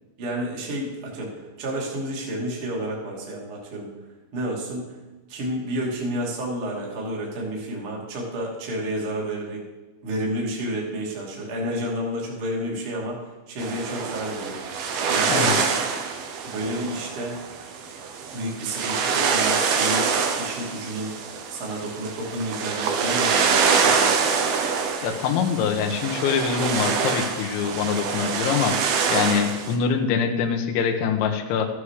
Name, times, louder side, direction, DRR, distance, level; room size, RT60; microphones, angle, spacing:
voice 1, 0.2-3.9 4.3-5.0 5.3-9.6 10.0-14.6 15.1-15.7 16.4-17.4 18.3-20.0 20.4-21.1 21.5-24.1, right 1 dB, 35° right, -3 dB, 2.8 m, -30 dB
sound 1, 13.6-29.8, right 5 dB, 70° right, 2.5 m, -25 dB
voice 2, 25.0-28.8 29.1-31.7, left 7 dB, 75° left, 3 dB, 3.3 m, -24 dB
14.5 x 9.9 x 4.9 m, 1.1 s
omnidirectional pair, 5.6 m